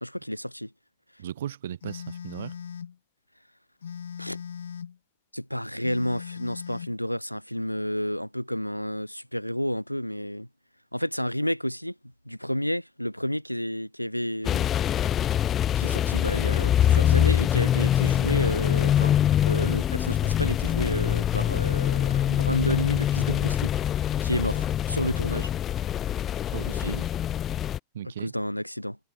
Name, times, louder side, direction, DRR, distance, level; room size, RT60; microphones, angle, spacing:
voice 1, 0.0-0.7 4.2-4.4 5.3-10.5 10.9-11.9 12.3-14.7 15.8-19.2 19.4-23.7 24.2-25.5 26.7-27.1 28.2-29.0, equal, 90° left, 0.8 m, -30 dB
voice 2, 1.2-2.5 26.5-27.0 27.9-28.3, right 10 dB, 60° right, 0.9 m, -36 dB
Telephone, 1.8-3.0 3.8-5.0 5.8-7.0, left 7 dB, 70° left, 1.1 m, -39 dB
sound 1, 14.4-27.8, left 10 dB, 30° left, 0.8 m, -24 dB
figure-of-eight pair, 90°, 0 cm